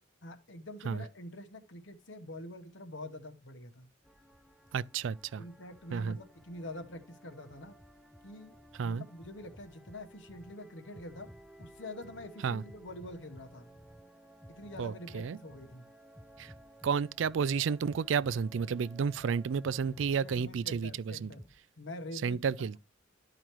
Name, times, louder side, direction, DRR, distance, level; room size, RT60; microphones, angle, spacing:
voice 1, 0.2-3.9 5.4-7.8 8.2-8.6 8.8-11.3 11.6-13.8 14.6-15.9 20.2-21.4 21.8-22.8, left 1 dB, 65° left, 1.1 m, -46 dB
sound 1, 4.0-21.6, equal, ahead, 0.5 m, -55 dB
voice 2, 4.7-5.4 5.9-6.2 8.8-9.0 12.4-12.6 14.8-15.4 16.4-16.5 16.8-21.3 22.2-22.8, right 6 dB, 70° right, 0.4 m, -31 dB
12.5 x 5.0 x 3.0 m
head